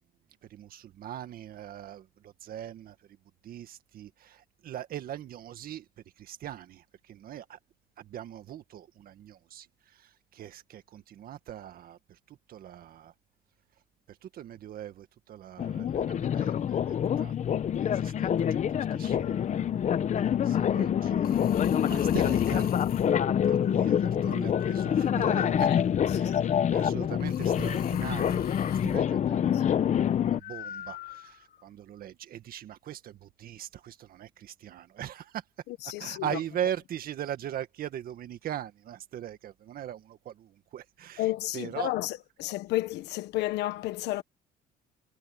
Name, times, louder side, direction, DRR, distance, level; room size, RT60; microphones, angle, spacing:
voice 1, 0.4-3.2 3.4-5.9 6.2-7.6 8.0-13.1 14.1-17.4 17.8-19.6 20.4-21.6 21.9-22.7 23.4-25.7 26.1-29.5 30.4-35.4 35.8-41.3 41.5-41.9, right 10 dB, 60° right, 1.9 m, -40 dB
sound 1, 15.6-30.4, left 9 dB, 45° left, 1.0 m, -26 dB
sound 2, 19.2-19.5 21.2-23.1 24.5-25.6 27.2-29.0 30.4-31.6, left 12 dB, 60° left, 1.2 m, -42 dB
voice 2, 26.1-26.7 29.5-29.8 35.8-36.4 41.2-44.2, left 16 dB, 85° left, 1.3 m, -32 dB
cardioid pair, 110°, 17 cm